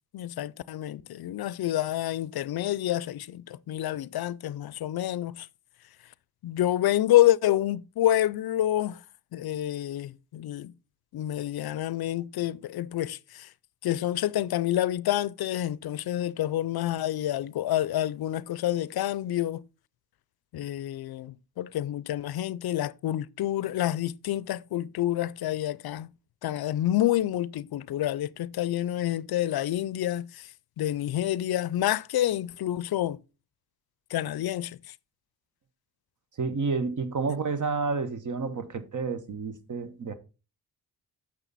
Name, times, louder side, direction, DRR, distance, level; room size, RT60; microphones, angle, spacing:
voice 1, 0.1-5.5 6.4-9.0 9.3-10.7 11.1-13.5 13.8-19.6 20.5-26.1 26.4-33.2 34.1-34.9, left 13 dB, 70° left, 0.5 m, -28 dB
voice 2, 36.4-40.1, right 4 dB, 50° right, 1.2 m, -30 dB
9.1 x 6.5 x 4.1 m
wide cardioid pair, 125°, 38 cm